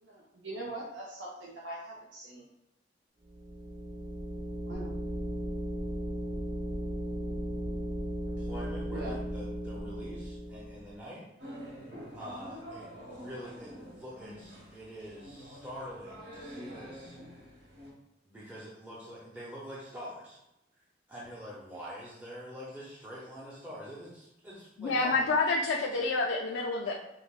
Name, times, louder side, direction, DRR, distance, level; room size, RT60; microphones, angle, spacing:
voice 1, 0.0-2.5 4.7-4.9 8.9-9.2, right 1 dB, 80° right, -4 dB, 0.6 m, -42 dB
sound 1, 3.2-11.0, right 1 dB, 45° right, 0.9 m, -36 dB
voice 2, 8.3-11.2 12.1-17.2 18.2-20.4 21.1-25.3, equal, 10° right, -7 dB, 0.6 m, -45 dB
sound 2, 11.4-17.9, equal, 65° right, 1.2 m, -47 dB
voice 3, 24.8-26.9, left 3 dB, 90° left, -1 dB, 0.4 m, -28 dB
5.4 x 2.1 x 2.3 m, 0.89 s
head